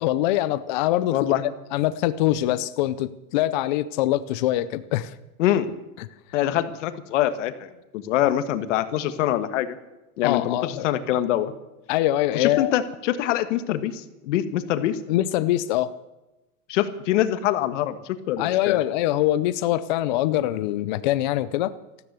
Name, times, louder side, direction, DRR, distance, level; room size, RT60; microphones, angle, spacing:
voice 1, 0.0-1.2 1.7-5.1 10.2-10.9 11.9-12.7 15.1-15.9 18.4-21.7, left 14 dB, 30° left, 13 dB, 0.5 m, -23 dB
voice 2, 1.1-1.4 5.4-5.7 6.3-9.7 10.2-11.5 12.3-15.0 16.7-18.8, left 12 dB, 55° left, 11 dB, 1.5 m, -24 dB
14.0 x 13.0 x 8.0 m, 0.99 s
supercardioid pair, 160°, 44 cm